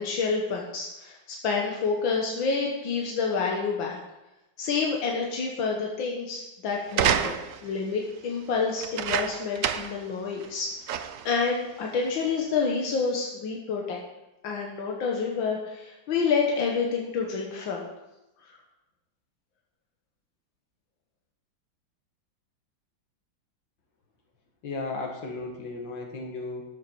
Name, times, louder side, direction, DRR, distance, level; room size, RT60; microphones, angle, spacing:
voice 1, 0.0-4.0 4.6-10.7 11.3-14.0 14.4-17.9, left 5 dB, 90° left, -1 dB, 1.9 m, -28 dB
sound 1, 6.9-7.7 8.8-10.0 10.4-10.5 10.9-11.3 12.1-12.2, right 9 dB, 70° right, 0.8 m, -28 dB
voice 2, 24.6-26.6, left 3 dB, 70° left, 1 dB, 2.4 m, -35 dB
12.5 x 7.3 x 4.6 m, 0.94 s
omnidirectional pair, 2.1 m